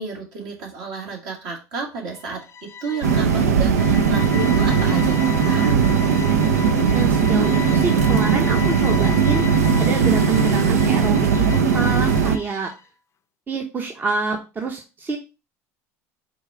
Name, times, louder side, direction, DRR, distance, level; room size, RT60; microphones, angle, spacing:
voice 1, 0.0-5.8, right 4 dB, 60° right, 0 dB, 1.8 m, -31 dB
sound 1, 2.1-12.8, left 5 dB, 35° left, 0.5 m, -35 dB
sound 2, 3.0-12.4, right 6 dB, 85° right, 0.4 m, -18 dB
voice 2, 6.9-12.7 13.5-15.2, right 4 dB, 25° right, 3 dB, 0.7 m, -27 dB
4.6 x 2.4 x 4.6 m, 0.30 s
hypercardioid pair, 80°, 8 cm